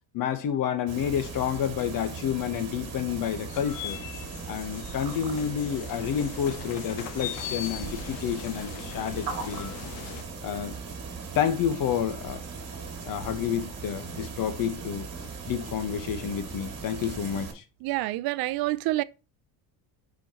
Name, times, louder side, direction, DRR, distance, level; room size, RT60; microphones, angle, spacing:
voice 1, 0.1-4.0 4.5-9.7 10.4-10.7 11.3-12.4 13.0-15.1 15.5-17.6, left 9 dB, 50° left, 1.4 m, -29 dB
sound 1, 0.9-17.5, right 5 dB, 35° right, 2.8 m, -38 dB
sound 2, 3.5-10.2, left 10 dB, 90° left, 1.5 m, -40 dB
voice 2, 17.8-19.0, right 18 dB, 60° right, 0.5 m, -27 dB
9.2 x 4.9 x 3.0 m
cardioid pair, 130°, 43 cm